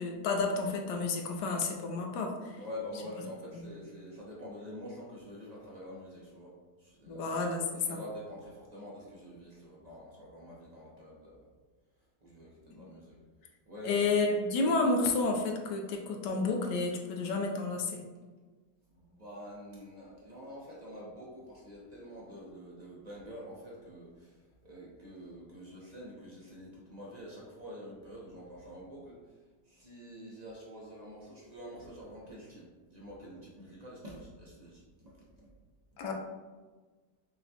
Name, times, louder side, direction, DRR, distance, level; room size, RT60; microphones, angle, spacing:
voice 1, 0.0-2.6 3.5-3.7 7.1-8.0 12.7-12.8 13.8-18.0 36.0-36.1, left 3 dB, 85° left, 2 dB, 1.2 m, -31 dB
voice 2, 2.6-6.5 6.8-7.3 7.7-11.4 12.2-13.2 13.7-14.3 18.9-29.2 29.7-34.8 35.2-35.5, equal, 45° right, -5 dB, 0.5 m, -47 dB
5.9 x 2.2 x 2.8 m, 1.3 s
omnidirectional pair, 1.8 m